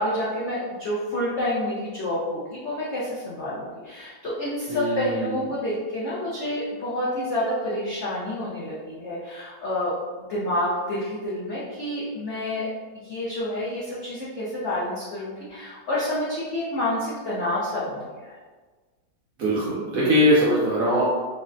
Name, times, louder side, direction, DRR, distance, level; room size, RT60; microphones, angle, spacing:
voice 1, 0.0-9.9 10.2-18.3, left 1 dB, 75° left, -7 dB, 0.6 m, -28 dB
voice 2, 4.7-5.3 19.4-21.0, equal, 70° right, -6 dB, 0.8 m, -21 dB
3.7 x 2.1 x 2.4 m, 1.4 s
omnidirectional pair, 1.9 m